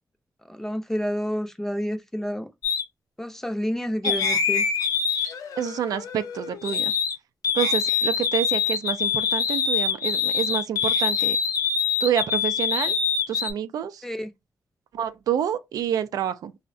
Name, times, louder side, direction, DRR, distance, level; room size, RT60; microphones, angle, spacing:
voice 1, 0.5-2.5 3.2-4.6 14.0-14.3, equal, 5° left, 0.4 m, -29 dB
sound 1, 2.6-2.8 4.0-7.2 7.4-13.5, left 6 dB, 70° left, 0.6 m, -25 dB
voice 2, 5.6-6.9 7.5-11.4 12.0-12.9 13.3-14.0 14.9-16.5, right 9 dB, 90° right, 0.3 m, -28 dB
3.5 x 2.1 x 2.5 m
wide cardioid pair, 115°, 6 cm